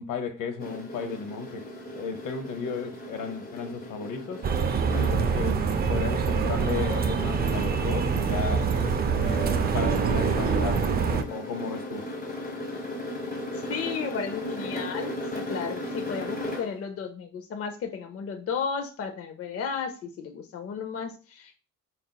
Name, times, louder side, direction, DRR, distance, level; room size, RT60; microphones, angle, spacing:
voice 1, 0.0-1.6 1.9-4.5 4.9-8.7 9.2-12.0, left 5 dB, 65° left, 0.9 m, -34 dB
sound 1, 0.6-16.8, left 1 dB, 25° left, 1.2 m, -37 dB
sound 2, 4.4-11.2, right 6 dB, 30° right, 0.4 m, -25 dB
voice 2, 13.5-21.6, left 6 dB, 45° left, 0.6 m, -34 dB
4.3 x 3.9 x 2.2 m
cardioid pair, 120°, 34 cm